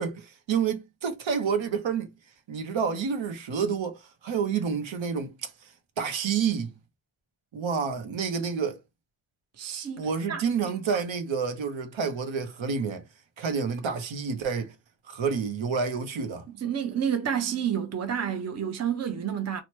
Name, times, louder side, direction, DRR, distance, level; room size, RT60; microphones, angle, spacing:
voice 1, 0.0-2.1 2.5-6.7 7.5-8.8 10.0-13.1 13.4-14.7 15.1-16.5, right 6 dB, 70° right, 0.8 m, -29 dB
voice 2, 9.6-10.4 16.6-19.6, right 8 dB, 35° right, 0.6 m, -29 dB
2.8 x 2.1 x 3.0 m
wide cardioid pair, 95°, 48 cm